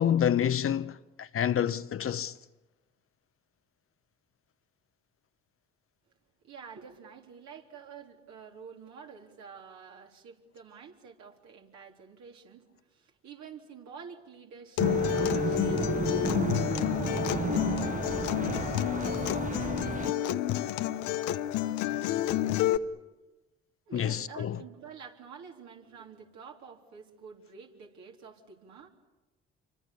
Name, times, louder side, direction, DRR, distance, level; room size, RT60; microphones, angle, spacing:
voice 1, 0.0-2.3 23.9-24.6, left 9 dB, 45° left, 1.0 m, -28 dB
voice 2, 6.4-16.5 23.9-28.9, right 6 dB, 65° right, 3.9 m, -49 dB
Acoustic guitar, 14.8-22.8, left 12 dB, 75° left, 1.0 m, -29 dB
sound 1, 14.8-20.1, right 5 dB, 25° right, 0.9 m, -33 dB
28.0 x 24.5 x 8.5 m
hypercardioid pair, 60°, 30 cm